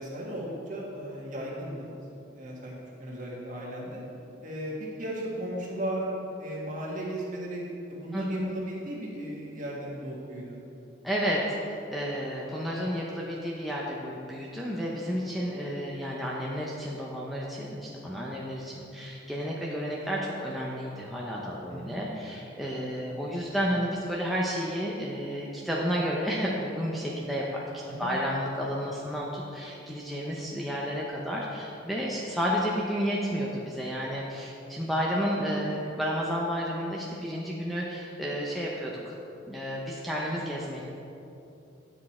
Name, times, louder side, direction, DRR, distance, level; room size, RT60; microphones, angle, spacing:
voice 1, 0.0-4.0 4.4-6.1 6.4-7.6 7.9-10.6 21.7-22.0 27.9-28.1, right 1 dB, 40° right, -4 dB, 1.8 m, -36 dB
voice 2, 11.0-27.6 28.0-39.1 39.5-40.8, equal, ahead, -5 dB, 0.6 m, -31 dB
10.0 x 6.2 x 4.3 m, 2.8 s
head